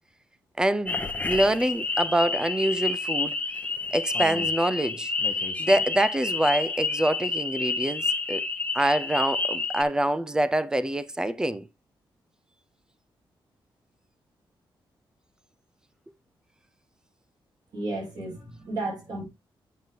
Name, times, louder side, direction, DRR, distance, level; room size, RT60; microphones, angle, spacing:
voice 1, 0.6-3.4 3.9-5.1 5.6-8.5 8.7-11.7, right 1 dB, 10° right, 0.4 m, -25 dB
sound 1, 0.9-9.8, left 4 dB, 15° left, 0.9 m, -29 dB
voice 2, 17.7-19.3, right 2 dB, 50° right, 6.4 m, -33 dB
9.2 x 7.5 x 2.7 m
wide cardioid pair, 175°, 9 cm